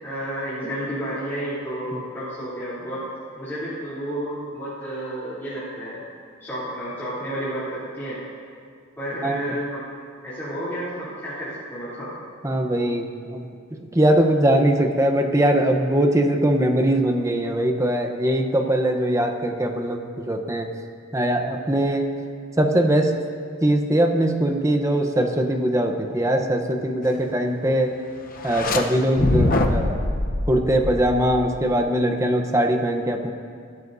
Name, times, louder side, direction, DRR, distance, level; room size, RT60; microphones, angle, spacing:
voice 1, 0.0-6.0 6.4-8.2 9.0-9.8 10.2-12.1, right 1 dB, 10° left, -13 dB, 3.3 m, -31 dB
voice 2, 12.4-20.7 21.1-22.1 22.6-23.1 23.6-27.9 28.4-30.0 30.5-33.3, right 1 dB, 15° right, 4 dB, 0.9 m, -21 dB
sound 1, 28.4-28.8 29.2-31.7, left 2 dB, 45° left, 0.9 m, -23 dB
23.0 x 12.0 x 2.7 m, 2.2 s
head